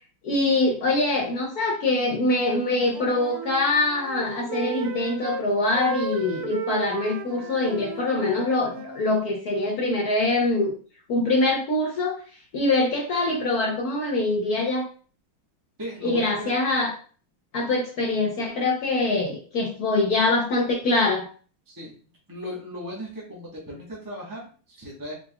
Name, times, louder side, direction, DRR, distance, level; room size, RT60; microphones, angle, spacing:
voice 1, 0.2-10.7 11.1-12.2 12.5-14.9 16.0-16.9 17.5-21.3, left 2 dB, 65° left, -2 dB, 1.0 m, -24 dB
Wind instrument woodwind instrument, 2.6-5.5 5.7-9.0, right 5 dB, 80° right, 0.8 m, -34 dB
voice 2, 15.8-16.5 21.7-21.9 22.3-25.1, equal, 15° right, -5 dB, 0.8 m, -37 dB
4.6 x 3.6 x 2.3 m, 0.40 s
omnidirectional pair, 2.4 m